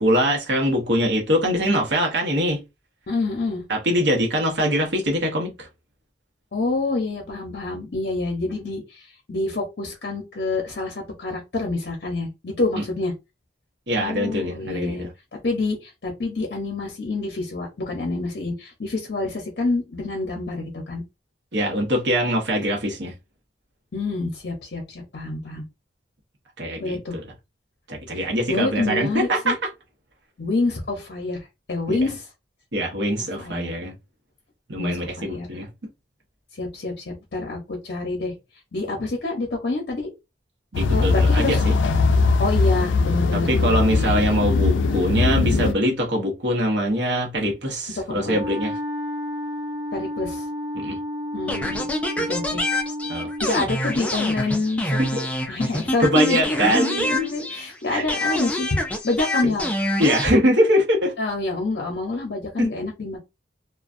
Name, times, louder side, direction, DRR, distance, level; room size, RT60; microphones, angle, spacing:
voice 1, 0.0-2.6 3.7-5.7 12.8-12.9 13.9-15.1 21.5-23.1 26.6-27.2 27.9-29.6 31.9-32.0 32.7-33.9 34.7-35.7 40.7-41.7 43.3-48.8 50.7-51.0 53.1-53.3 55.0-55.3 55.7-57.3 57.9-58.0 59.4-59.5 60.0-61.1 62.6-62.7, equal, 70° right, 0.9 m, -23 dB
voice 2, 3.1-3.6 6.5-13.1 14.0-15.1 15.3-21.0 23.9-25.6 26.8-27.2 28.5-29.6 30.4-32.3 33.4-33.7 34.8-35.5 36.5-38.4 38.7-40.1 40.9-41.6 42.4-43.8 48.1-48.4 49.9-50.5 51.3-51.9 52.3-52.6 53.4-55.0 55.5-59.7 61.2-63.2, left 3 dB, 60° left, 0.7 m, -27 dB
sound 1, 40.7-45.7, left 3 dB, 85° left, 0.3 m, -20 dB
Wind instrument woodwind instrument, 48.2-53.6, left 1 dB, 35° right, 0.6 m, -31 dB
sound 2, 51.5-57.7 58.1-60.3, left 1 dB, 5° left, 0.4 m, -26 dB
2.4 x 2.2 x 2.4 m
head